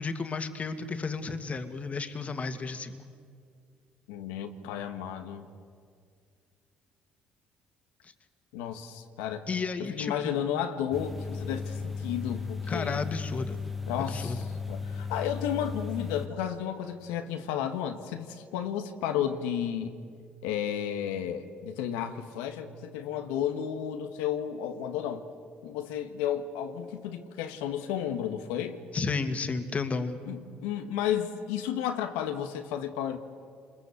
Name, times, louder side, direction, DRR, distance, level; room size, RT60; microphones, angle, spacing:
voice 1, 0.0-3.0 8.0-8.1 9.5-10.4 12.7-13.6 14.0-14.4 28.9-30.2, left 4 dB, 40° left, 9 dB, 2.3 m, -32 dB
voice 2, 4.1-5.5 8.5-9.5 9.8-13.0 13.9-19.9 20.4-25.2 25.6-28.8 30.3-33.2, left 9 dB, 90° left, 6 dB, 1.4 m, -33 dB
sound 1, 10.9-16.3, left 5 dB, 5° right, 1.8 m, -35 dB
27.0 x 21.5 x 8.3 m, 2.2 s
supercardioid pair, 75°, 4 cm